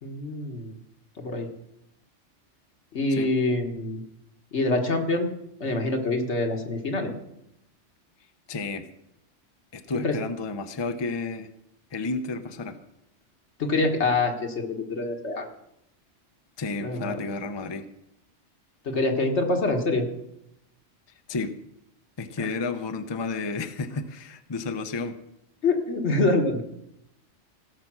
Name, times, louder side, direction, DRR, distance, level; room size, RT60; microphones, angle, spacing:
voice 1, 0.0-0.7 1.2-1.5 2.9-4.0 4.5-5.3 5.6-7.1 10.0-10.2 13.6-15.5 16.8-17.2 18.9-20.1 22.4-22.5 25.6-26.6, left 2 dB, 75° left, 3 dB, 1.8 m, -25 dB
voice 2, 8.5-8.8 9.7-11.5 11.9-12.8 16.6-17.8 21.3-21.5 22.2-25.1, left 3 dB, 25° left, 8 dB, 0.7 m, -31 dB
16.5 x 6.7 x 6.1 m, 0.83 s
omnidirectional pair, 1.2 m